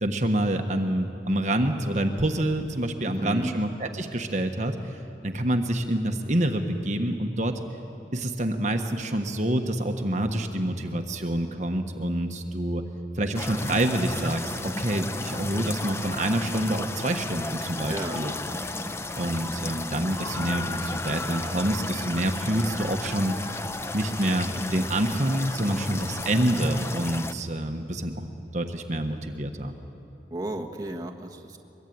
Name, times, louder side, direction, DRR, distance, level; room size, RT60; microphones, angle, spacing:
voice 1, 0.0-7.6 8.1-12.8 13.1-18.3 19.2-23.4 23.9-28.3 28.5-29.7, right 1 dB, 40° right, 5 dB, 1.3 m, -27 dB
voice 2, 3.0-3.5 17.9-18.3 30.3-31.6, right 1 dB, 20° right, 2 dB, 1.4 m, -33 dB
sound 1, 13.3-27.3, left 2 dB, 15° left, 0.7 m, -34 dB
24.0 x 23.0 x 9.4 m, 2.9 s
head